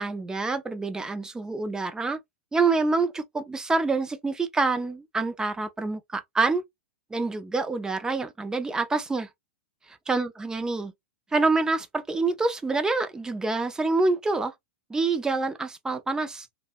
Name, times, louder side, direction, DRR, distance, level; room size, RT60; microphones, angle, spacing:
voice 1, 0.0-2.2 2.5-6.6 7.1-9.3 10.1-10.9 11.3-14.5 14.9-16.5, right 3 dB, 10° right, 0.4 m, -26 dB
2.6 x 2.0 x 2.4 m
hypercardioid pair, 115°, 7 cm